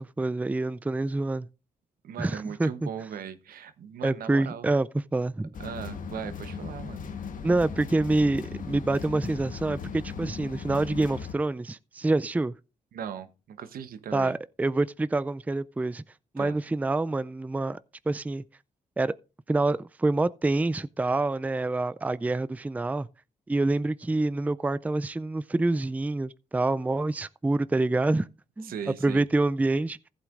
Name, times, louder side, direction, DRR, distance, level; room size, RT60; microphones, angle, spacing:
voice 1, 0.0-1.5 2.2-2.9 4.0-4.9 5.1-5.5 7.4-12.5 14.1-16.0 16.3-17.8 18.1-18.4 19.0-19.1 19.5-23.1 23.5-28.3 28.6-28.7 29.0-30.0, right 2 dB, 10° right, 0.4 m, -26 dB
voice 2, 2.0-4.7 5.6-7.0 12.9-14.4 16.4-16.6 28.6-29.3, right 8 dB, 80° right, 0.9 m, -38 dB
sound 1, 5.5-11.3, left 6 dB, 65° left, 1.2 m, -38 dB
15.0 x 8.2 x 2.5 m
cardioid pair, 60°, 15 cm